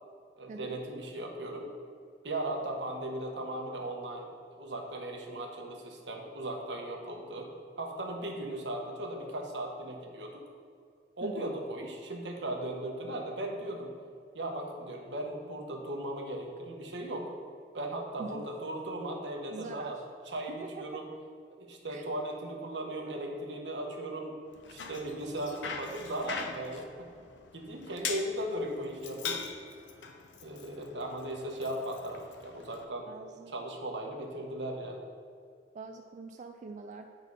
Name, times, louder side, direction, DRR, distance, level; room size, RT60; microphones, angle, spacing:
voice 1, 0.4-1.7 2.2-7.5 7.8-10.4 11.2-13.9 14.3-17.3 17.7-20.0 20.3-21.0 21.6-24.4 24.7-27.1 27.5-29.4 30.4-35.0, right 1 dB, 80° right, 1 dB, 1.1 m, -37 dB
voice 2, 11.2-11.5 18.2-18.5 19.5-20.0 20.5-21.0 21.9-22.1 27.9-28.1 33.1-33.5 35.7-37.1, right 3 dB, 45° right, 4 dB, 0.3 m, -44 dB
Bicycle, 24.5-32.8, left 5 dB, 90° left, 0.7 m, -42 dB
8.1 x 4.0 x 5.4 m, 2.3 s
head